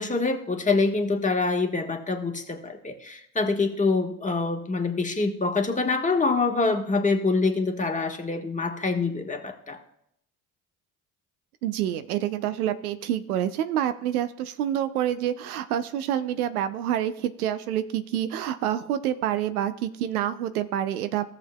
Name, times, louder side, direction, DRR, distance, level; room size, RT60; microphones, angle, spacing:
voice 1, 0.0-9.8, left 3 dB, 15° left, 4 dB, 1.5 m, -25 dB
voice 2, 11.6-21.3, right 11 dB, 80° right, 12 dB, 0.6 m, -27 dB
16.5 x 7.0 x 2.3 m, 0.74 s
figure-of-eight pair, 50°, 43 cm